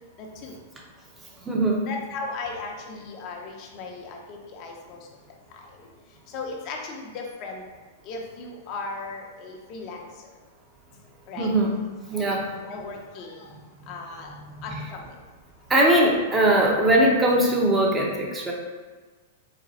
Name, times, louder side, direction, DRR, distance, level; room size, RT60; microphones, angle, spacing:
voice 1, 0.2-0.5 1.8-5.0 6.3-7.6 8.0-10.1 11.3-11.5 12.1-13.5 13.9-14.3 14.6-15.0, left 3 dB, 45° left, 1 dB, 0.7 m, -37 dB
voice 2, 1.4-1.8 11.4-11.7 12.1-12.5 14.5-14.8 15.7-18.5, right 1 dB, 15° right, -1 dB, 0.8 m, -21 dB
4.1 x 2.3 x 4.0 m, 1.4 s
hypercardioid pair, 115°, 0 cm